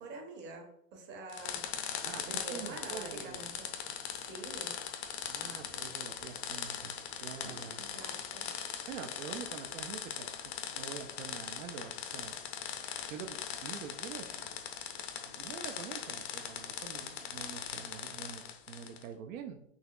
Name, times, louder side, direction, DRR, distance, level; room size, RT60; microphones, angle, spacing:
voice 1, 0.0-1.6 2.2-3.7 4.1-4.7 7.8-8.5, right 3 dB, 25° right, 2 dB, 0.7 m, -46 dB
sound 1, 1.3-19.1, left 8 dB, 50° left, 0.5 m, -40 dB
voice 2, 2.0-3.4 5.2-7.9 8.9-10.4 10.7-12.4 12.6-14.5 15.2-19.6, right 7 dB, 75° right, 5 dB, 0.5 m, -46 dB
4.0 x 2.9 x 2.3 m, 0.74 s
hypercardioid pair, 125°, 42 cm